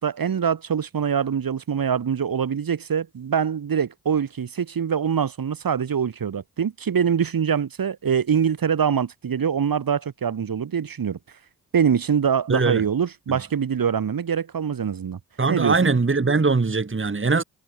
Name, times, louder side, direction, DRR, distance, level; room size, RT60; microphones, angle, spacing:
voice 1, 0.0-11.2 11.7-15.2 15.5-15.9, right 7 dB, 60° right, 2.9 m, -24 dB
voice 2, 12.5-12.8 13.3-13.4 15.4-17.4, right 4 dB, 30° right, 2.7 m, -21 dB
supercardioid pair, 40°, 39 cm